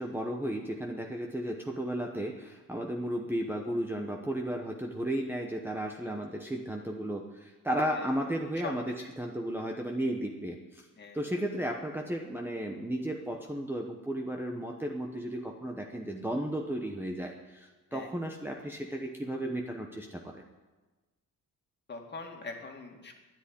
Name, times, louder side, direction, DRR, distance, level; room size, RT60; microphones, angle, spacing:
voice 1, 0.0-10.8 11.1-20.4, right 1 dB, 5° right, 1 dB, 0.9 m, -34 dB
voice 2, 8.6-9.1 11.0-11.4 17.9-18.1 21.9-23.1, left 4 dB, 30° left, 2 dB, 2.2 m, -43 dB
12.0 x 10.5 x 9.8 m, 1.2 s
wide cardioid pair, 160°, 33 cm